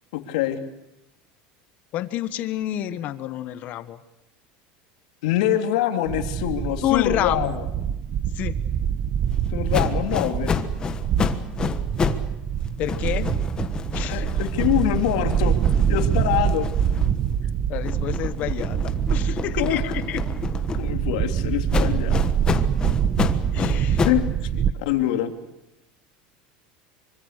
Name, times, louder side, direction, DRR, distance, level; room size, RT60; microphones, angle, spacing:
voice 1, 0.1-0.6 5.2-7.6 9.5-10.5 14.1-15.5 15.9-16.7 19.5-19.8 20.7-22.2 24.1-24.3 24.8-25.3, left 12 dB, 80° left, 5 dB, 2.9 m, -24 dB
voice 2, 1.9-4.0 6.8-7.6 8.3-8.6 12.8-13.3 13.9-14.3 17.7-18.8 19.1-20.4 23.5-24.1 24.5-24.6, left 13 dB, 45° left, 12 dB, 1.3 m, -28 dB
sound 1, 6.1-24.7, right 9 dB, 35° right, 1.0 m, -25 dB
sound 2, 9.7-12.3 12.6-17.4 17.8-21.1 21.7-24.3, left 6 dB, 20° left, 1.3 m, -29 dB
25.5 x 24.5 x 6.7 m, 0.89 s
supercardioid pair, 155°, 4 cm